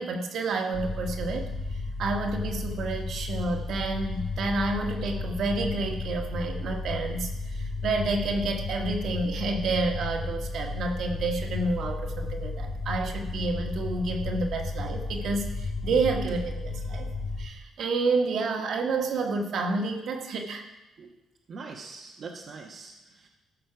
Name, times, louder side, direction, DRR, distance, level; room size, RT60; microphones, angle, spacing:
voice 1, 0.0-17.1 17.4-20.6, right 3 dB, 70° right, 3 dB, 1.6 m, -29 dB
sound 1, 0.7-17.5, left 3 dB, 20° left, 1.5 m, -33 dB
voice 2, 21.5-23.3, right 4 dB, 55° right, -1 dB, 1.2 m, -43 dB
14.0 x 6.3 x 5.9 m, 1.0 s
cardioid pair, 90°, 0 cm